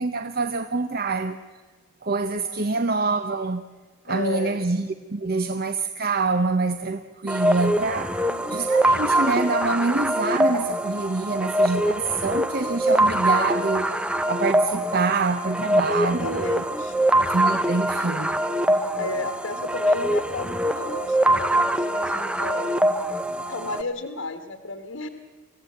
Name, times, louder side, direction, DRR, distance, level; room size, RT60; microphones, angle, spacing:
voice 1, 0.0-1.4 2.0-3.6 4.0-8.2 8.5-14.0 14.3-16.6 17.3-18.3, right 3 dB, 45° right, 0.7 m, -26 dB
voice 2, 2.4-2.8 4.1-4.7 8.2-8.8 15.8-17.1 18.4-22.7 23.5-25.1, left 3 dB, 70° left, 1.5 m, -34 dB
sound 1, 7.3-23.8, right 1 dB, 5° right, 0.6 m, -23 dB
24.5 x 16.0 x 8.5 m
head